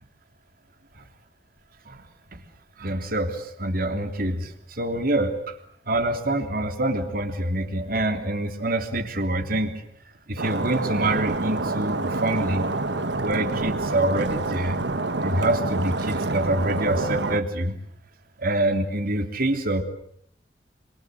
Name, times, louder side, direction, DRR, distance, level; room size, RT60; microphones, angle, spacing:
voice 1, 2.8-5.5 5.9-9.7 10.3-12.7 13.2-14.8 15.2-17.8 18.4-19.8, right 1 dB, 55° right, 6 dB, 3.2 m, -26 dB
Stream, 10.4-17.4, right 2 dB, 70° right, 1.5 m, -27 dB
27.0 x 27.0 x 7.9 m, 0.66 s
head